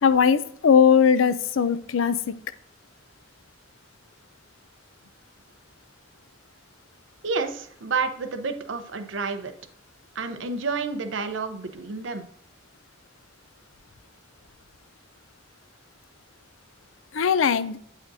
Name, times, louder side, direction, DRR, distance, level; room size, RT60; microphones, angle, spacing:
voice 1, 0.0-2.2 17.1-17.8, left 7 dB, 90° left, 14 dB, 0.5 m, -19 dB
voice 2, 7.2-9.5 10.1-12.3, right 4 dB, 75° right, 8 dB, 0.7 m, -29 dB
8.8 x 5.0 x 2.7 m, 0.65 s
head